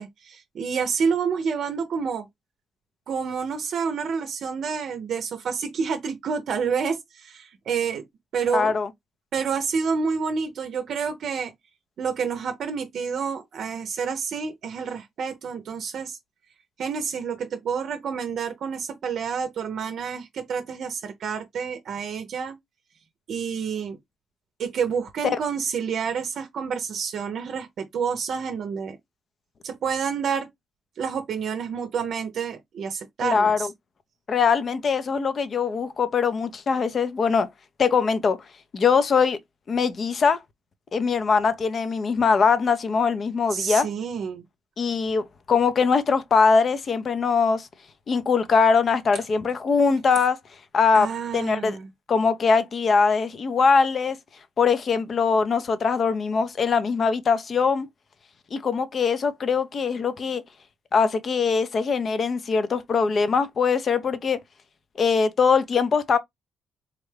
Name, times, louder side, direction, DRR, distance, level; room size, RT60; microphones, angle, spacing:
voice 1, 0.0-2.3 3.1-8.0 8.3-8.7 9.3-11.5 12.0-16.2 16.8-22.6 23.3-24.0 24.6-29.0 29.6-30.5 31.0-33.7 43.5-44.4 50.9-51.9, right 6 dB, 65° right, 0.6 m, -28 dB
voice 2, 8.5-8.9 33.2-33.7 34.3-37.5 37.8-38.4 38.7-39.4 39.7-40.4 40.9-43.9 44.8-47.7 48.1-50.4 50.7-51.8 52.1-54.2 54.6-57.9 58.5-60.4 60.9-64.4 65.0-66.2, left 5 dB, 45° left, 0.5 m, -22 dB
3.6 x 2.2 x 3.2 m
cardioid pair, 90°, 0 cm